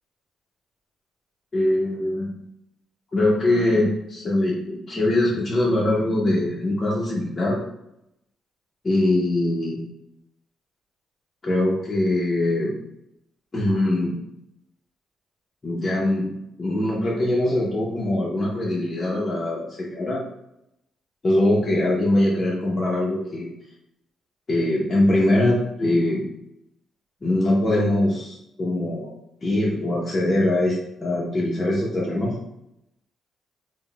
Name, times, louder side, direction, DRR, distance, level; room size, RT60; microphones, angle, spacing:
voice 1, 1.5-2.3 3.1-7.6 8.8-9.8 11.4-12.7 13.5-14.2 15.6-16.3 16.6-20.2 21.2-23.5 24.5-26.2 27.2-29.1 29.4-32.3, left 1 dB, 30° left, -6 dB, 0.6 m, -22 dB
3.6 x 2.0 x 2.2 m, 0.83 s
cardioid pair, 90°, 0 cm